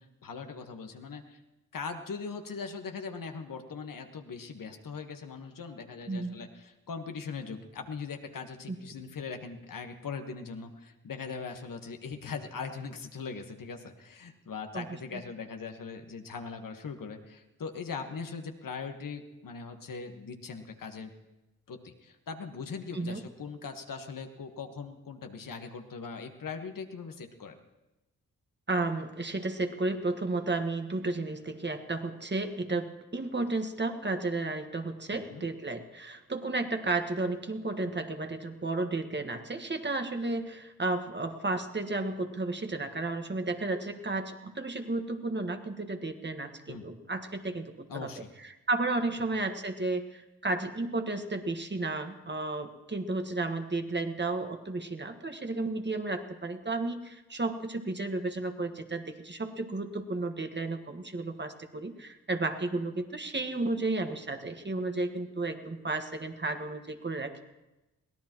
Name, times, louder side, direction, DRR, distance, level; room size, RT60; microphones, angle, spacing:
voice 1, 0.0-1.4 1.7-21.1 21.7-27.6 35.1-35.5 46.7-46.8 47.9-48.3, left 5 dB, 60° left, 5 dB, 1.5 m, -40 dB
voice 2, 28.7-48.1 48.4-67.4, right 2 dB, 30° right, 6 dB, 1.6 m, -33 dB
23.0 x 17.5 x 3.1 m, 1.0 s
supercardioid pair, 40°, 38 cm